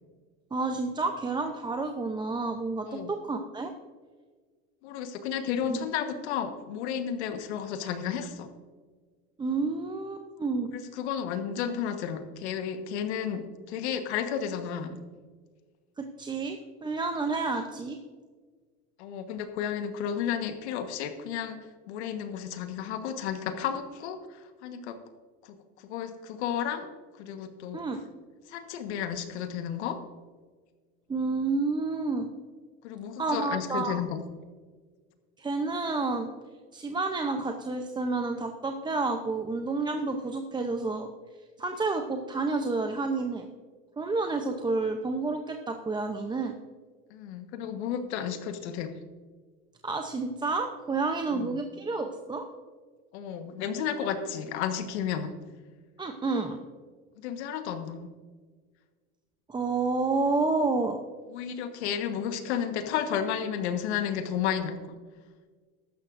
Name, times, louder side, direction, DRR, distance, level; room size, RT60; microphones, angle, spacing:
voice 1, 0.5-3.7 5.7-5.8 9.4-10.7 16.0-18.0 27.7-28.0 31.1-32.3 33.2-34.0 35.4-36.3 36.7-41.1 41.6-43.5 44.0-46.6 49.8-52.5 56.0-56.6 59.5-61.0, right 3 dB, 15° right, 5 dB, 0.7 m, -30 dB
voice 2, 4.8-8.5 10.7-15.0 19.0-21.6 21.9-24.9 25.4-26.9 27.2-27.8 28.5-30.0 32.8-34.2 47.1-48.9 51.3-51.6 53.1-55.3 57.2-58.1 61.3-65.0, left 8 dB, 90° left, 8 dB, 1.4 m, -32 dB
14.5 x 12.0 x 2.6 m, 1.5 s
supercardioid pair, 125°, 33 cm